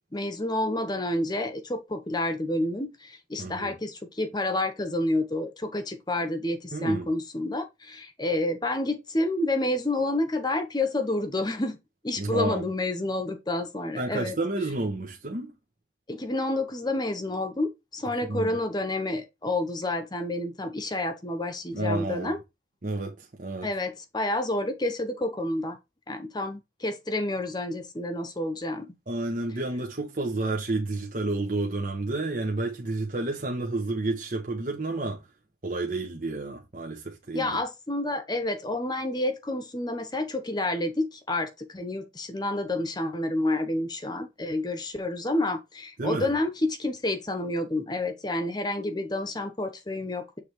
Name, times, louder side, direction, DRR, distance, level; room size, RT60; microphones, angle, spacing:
voice 1, 0.1-11.8 12.0-14.4 16.1-22.4 23.6-25.8 26.1-28.9 37.3-50.4, left 1 dB, 25° left, 0.9 m, -29 dB
voice 2, 3.4-3.8 6.7-7.1 12.2-12.7 14.0-15.5 18.1-18.6 21.7-22.3 22.8-23.7 29.1-35.2 35.6-37.6 46.0-46.3, right 2 dB, 50° right, 1.1 m, -30 dB
7.2 x 3.4 x 4.6 m
head